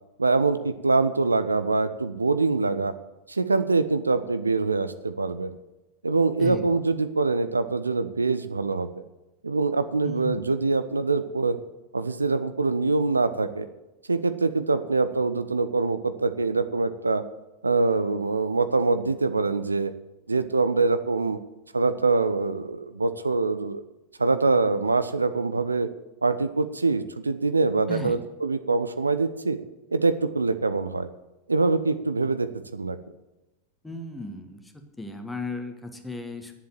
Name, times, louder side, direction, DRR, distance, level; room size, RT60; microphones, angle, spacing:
voice 1, 0.2-2.9 3.3-5.6 6.0-8.9 9.4-11.6 11.9-13.7 14.1-17.2 17.6-19.9 20.3-21.4 21.7-23.8 24.2-25.9 26.2-29.6 29.9-31.1 31.5-33.0, right 3 dB, 80° right, 12 dB, 0.6 m, -24 dB
voice 2, 10.0-10.5 27.9-28.2 33.8-34.6 35.0-36.5, left 2 dB, 5° left, 6 dB, 1.6 m, -35 dB
10.5 x 7.5 x 9.1 m, 1.0 s
figure-of-eight pair, 90°, 0 cm